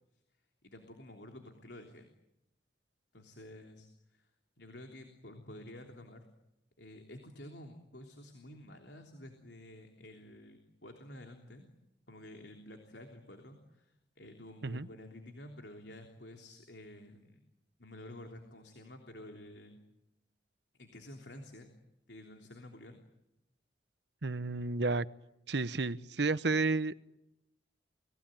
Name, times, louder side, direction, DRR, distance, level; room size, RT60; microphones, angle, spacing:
voice 1, 0.6-2.1 3.1-4.3 4.6-6.2 6.8-11.7 12.1-17.4 17.8-19.8 20.8-21.7 22.1-23.0, left 1 dB, 75° left, 3.3 m, -51 dB
voice 2, 24.2-25.1 25.5-27.1, right 3 dB, 75° right, 1.0 m, -31 dB
29.5 x 21.0 x 9.1 m
head